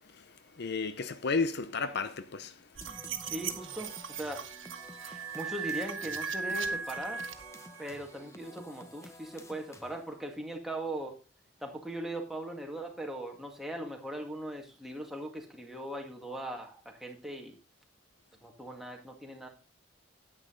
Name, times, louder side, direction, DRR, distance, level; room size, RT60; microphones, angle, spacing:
voice 1, 0.1-2.6, left 4 dB, 60° left, 0.6 m, -33 dB
sound 1, 2.8-10.2, left 2 dB, 15° left, 0.9 m, -52 dB
sound 2, 2.8-7.9, right 5 dB, 85° right, 1.3 m, -38 dB
voice 2, 3.3-4.4 5.0-7.2 7.8-11.1 11.6-17.6 18.4-19.5, right 1 dB, ahead, 2.0 m, -40 dB
10.0 x 9.0 x 3.8 m
head